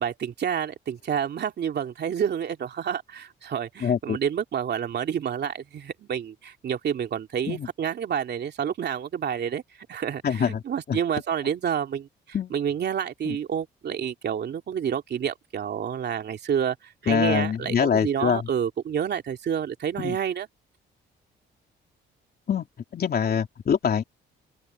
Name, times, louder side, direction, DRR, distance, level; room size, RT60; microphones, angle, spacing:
voice 1, 0.0-9.6 9.9-12.1 12.5-20.5, right 8 dB, 55° right, 2.7 m, -29 dB
voice 2, 3.8-4.2 7.5-7.7 10.2-10.6 10.9-11.0 12.3-12.5 13.2-13.4 17.1-18.4 20.0-20.2 22.5-22.6 22.9-24.0, left 7 dB, 50° left, 3.4 m, -24 dB
open air
cardioid pair, 90°, 20 cm